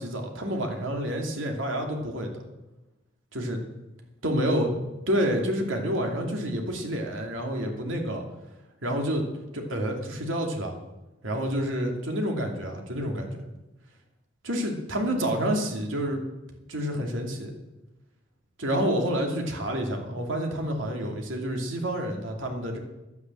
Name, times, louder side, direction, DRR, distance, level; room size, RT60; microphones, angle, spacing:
voice 1, 0.0-2.3 3.3-3.6 4.2-8.2 8.8-9.3 9.5-10.7 11.2-13.4 14.4-16.2 16.7-17.5 18.6-22.8, equal, 85° right, 2 dB, 2.7 m, -28 dB
12.0 x 9.6 x 7.7 m, 1.0 s
head